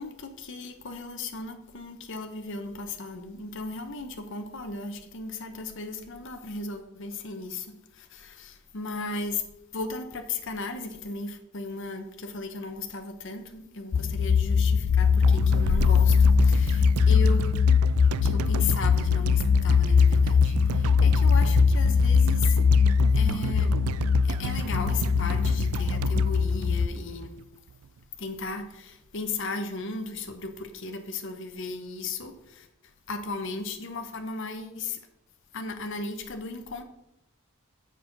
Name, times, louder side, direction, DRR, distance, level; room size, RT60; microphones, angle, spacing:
voice 1, 0.0-9.4 9.7-17.6 18.2-22.6 23.1-23.7 24.2-27.3 28.2-32.7 33.1-35.0 35.5-36.8, left 3 dB, 60° left, 5 dB, 0.9 m, -35 dB
sound 1, 13.9-26.9, left 6 dB, 75° left, 0.4 m, -21 dB
sound 2, 15.2-27.4 27.7-27.8, right 7 dB, 80° right, 0.3 m, -33 dB
6.8 x 6.2 x 5.2 m, 0.87 s
head